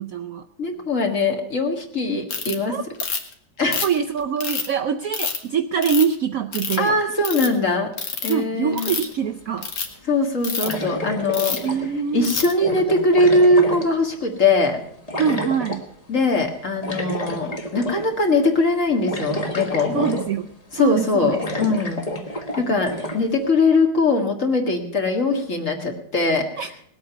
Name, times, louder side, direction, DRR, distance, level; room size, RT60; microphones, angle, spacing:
voice 1, 0.0-0.4 2.7-2.8 3.8-7.0 8.3-9.7 11.6-12.3 15.2-15.8 19.9-20.5 20.7-21.4 26.6-26.7, right 7 dB, 65° right, 6 dB, 0.9 m, -24 dB
voice 2, 0.6-2.8 3.6-3.8 6.8-7.9 8.2-8.9 10.0-11.6 12.1-14.8 16.1-20.1 20.7-22.0 22.6-26.6, left 2 dB, 45° left, 3 dB, 2.1 m, -21 dB
Ratchet pawl, 2.3-2.5 3.0-3.3 3.7-4.7 5.1-5.4 5.8-6.1 6.5-6.9 7.2-7.5 8.0-8.3 8.7-9.1 9.6-9.9 10.4-10.7 11.3-11.7 12.2-12.5, left 5 dB, 65° left, 2.2 m, -27 dB
sound 1, 9.2-9.3 10.6-12.1 12.6-14.4 15.1-15.9 16.8-18.1 18.5-18.6 19.1-20.5 20.9-21.0 21.4-23.2, left 1 dB, 25° left, 1.2 m, -29 dB
19.5 x 8.6 x 5.7 m, 0.68 s
omnidirectional pair, 2.0 m